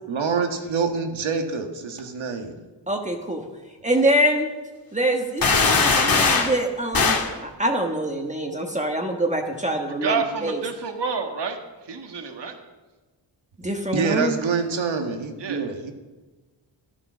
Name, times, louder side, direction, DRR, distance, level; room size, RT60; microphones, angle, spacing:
voice 1, 0.1-2.6 13.9-15.9, right 5 dB, 85° right, 5 dB, 1.9 m, -26 dB
voice 2, 2.9-3.4 3.8-4.5 4.9-10.6 13.6-14.4, right 1 dB, 15° right, 2 dB, 1.4 m, -25 dB
sound 1, 5.4-6.6 6.9-7.3, left 4 dB, 50° left, 2.0 m, -19 dB
voice 3, 10.0-11.6 11.9-12.5 15.4-15.6, right 5 dB, 60° right, 4 dB, 1.7 m, -28 dB
14.0 x 12.5 x 6.3 m, 1.2 s
wide cardioid pair, 160°, 46 cm